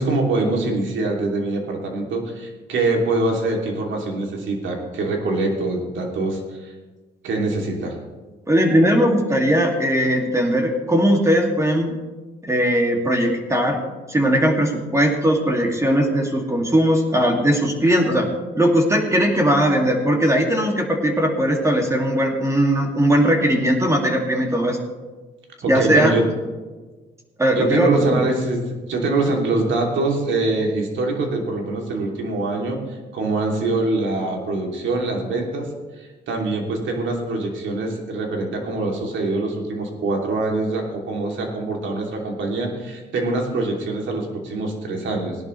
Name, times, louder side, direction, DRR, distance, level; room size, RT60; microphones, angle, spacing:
voice 1, 0.0-6.7 7.2-8.0 25.6-26.2 27.5-28.6 28.9-32.8 33.1-35.7 36.0-45.4, right 2 dB, 75° right, 1 dB, 3.0 m, -24 dB
voice 2, 8.5-11.9 12.4-13.8 14.1-18.3 18.5-24.8 25.6-26.1 27.4-28.2, equal, 15° right, 2 dB, 2.5 m, -19 dB
18.0 x 11.0 x 3.3 m, 1.3 s
cardioid pair, 90°, 20 cm